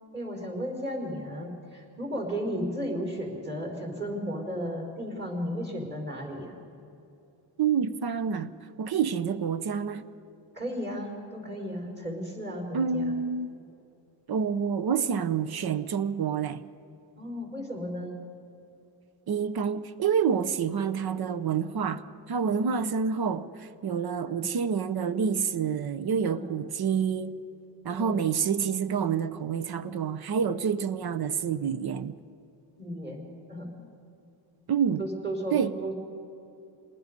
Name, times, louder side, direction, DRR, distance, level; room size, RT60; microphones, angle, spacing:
voice 1, 0.1-6.6 10.5-13.2 17.2-18.2 22.5-22.8 24.2-24.5 26.2-26.5 27.9-28.2 32.8-33.7 35.0-35.9, equal, 25° right, 4.9 m, -34 dB
voice 2, 7.6-8.5 8.8-10.1 12.7-13.5 14.3-16.6 19.3-22.0 22.3-27.4 27.8-32.1 34.7-35.0 35.5-35.7, right 7 dB, 55° right, 0.9 m, -28 dB
27.0 x 20.0 x 5.3 m
cardioid pair, 95°, 45 cm